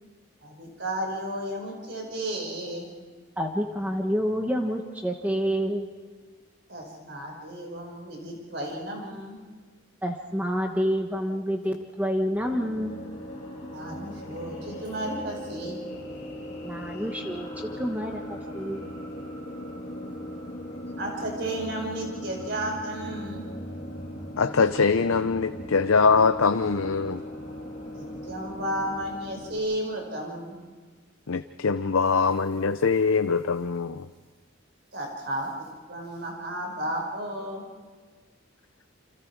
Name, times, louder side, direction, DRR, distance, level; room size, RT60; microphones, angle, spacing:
voice 1, 0.4-2.9 6.7-9.4 13.7-15.8 21.0-23.5 27.9-30.6 34.9-37.7, right 1 dB, 55° right, 1 dB, 5.5 m, -33 dB
voice 2, 3.4-5.9 10.0-13.0 16.6-18.9, equal, 10° right, 2 dB, 1.2 m, -28 dB
sound 1, 12.3-29.6, equal, 30° left, 6.5 m, -39 dB
voice 3, 24.4-27.2 31.3-34.1, left 5 dB, 85° left, 9 dB, 0.7 m, -23 dB
29.0 x 26.5 x 4.8 m, 1.4 s
head